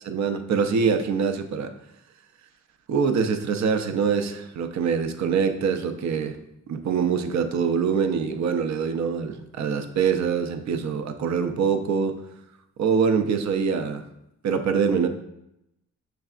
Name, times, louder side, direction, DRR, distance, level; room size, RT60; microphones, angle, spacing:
voice 1, 0.0-1.7 2.9-6.4 6.7-12.1 12.8-14.0 14.4-15.1, right 6 dB, 70° right, 8 dB, 0.5 m, -24 dB
5.7 x 3.3 x 2.4 m, 0.82 s
cardioid pair, 105°, 30 cm